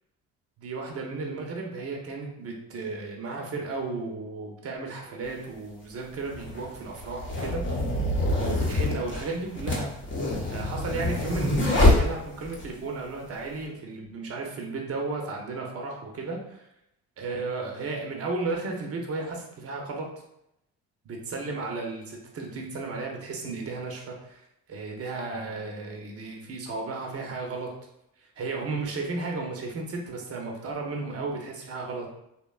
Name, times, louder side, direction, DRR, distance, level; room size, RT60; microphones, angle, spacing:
voice 1, 0.6-7.6 8.4-9.9 10.4-16.6 17.2-20.1 21.0-27.7 28.2-32.1, right 3 dB, 40° right, 1 dB, 0.7 m, -34 dB
sound 1, 5.2-5.3 6.3-12.7, left 1 dB, 30° left, 0.8 m, -25 dB
2.8 x 2.1 x 2.3 m, 0.82 s
hypercardioid pair, 55°, 39 cm